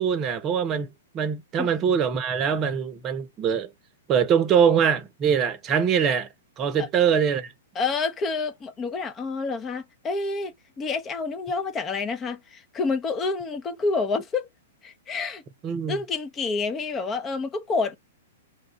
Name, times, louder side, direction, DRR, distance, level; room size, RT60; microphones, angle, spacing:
voice 1, 0.0-3.7 4.1-6.3 6.6-7.5 15.6-16.0, right 7 dB, 30° right, 0.8 m, -23 dB
voice 2, 7.8-14.5 14.8-15.4 15.9-18.0, left 4 dB, 25° left, 0.9 m, -28 dB
3.6 x 2.5 x 3.2 m
hypercardioid pair, 115°, 0 cm